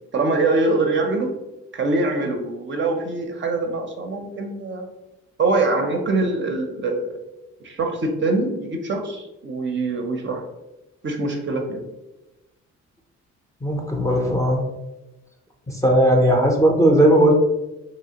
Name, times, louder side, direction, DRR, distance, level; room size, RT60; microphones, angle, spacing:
voice 1, 0.1-1.3 1.7-4.9 5.4-7.2 7.6-10.4 11.0-11.8, right 3 dB, 40° right, 3 dB, 0.5 m, -23 dB
voice 2, 13.6-14.6 15.7-17.3, right 1 dB, 10° left, 1 dB, 0.5 m, -17 dB
2.9 x 2.4 x 2.8 m, 0.97 s
cardioid pair, 90°, 30 cm